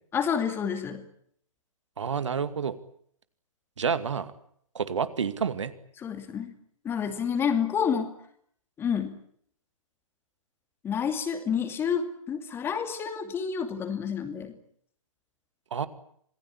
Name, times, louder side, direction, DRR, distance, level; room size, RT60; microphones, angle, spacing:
voice 1, 0.1-1.1 6.0-6.5 6.8-8.1 8.8-9.2 10.8-14.5, left 7 dB, 15° left, 8 dB, 2.7 m, -29 dB
voice 2, 2.0-2.7 3.8-4.3 4.7-5.7 15.7-15.9, right 6 dB, 55° right, 12 dB, 2.3 m, -29 dB
27.0 x 19.5 x 9.8 m, 0.65 s
figure-of-eight pair, 125°, 18 cm